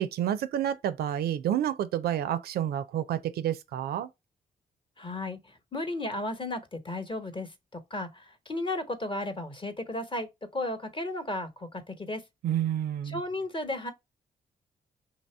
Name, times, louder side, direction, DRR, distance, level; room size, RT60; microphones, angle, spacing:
voice 1, 0.0-4.1 12.4-13.2, right 10 dB, 75° right, 0.4 m, -29 dB
voice 2, 5.0-5.4 5.7-12.2 13.1-13.9, left 2 dB, 30° left, 1.0 m, -34 dB
2.9 x 2.7 x 4.4 m
supercardioid pair, 55°, 16 cm